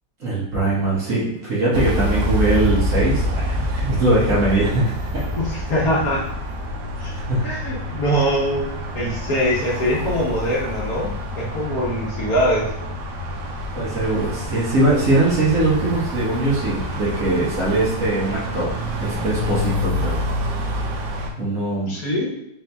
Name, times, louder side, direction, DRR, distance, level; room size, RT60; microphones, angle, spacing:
voice 1, 0.2-5.2 7.1-7.4 13.7-18.7 19.0-20.2 21.4-21.9, right 2 dB, 50° right, -6 dB, 1.2 m, -21 dB
sound 1, 1.7-21.3, left 1 dB, 70° right, 1.2 m, -27 dB
voice 2, 5.4-6.2 7.0-7.1 7.4-8.7 8.9-12.6 21.9-22.3, equal, 55° left, -5 dB, 1.3 m, -22 dB
4.2 x 2.7 x 3.3 m, 0.81 s
omnidirectional pair, 2.0 m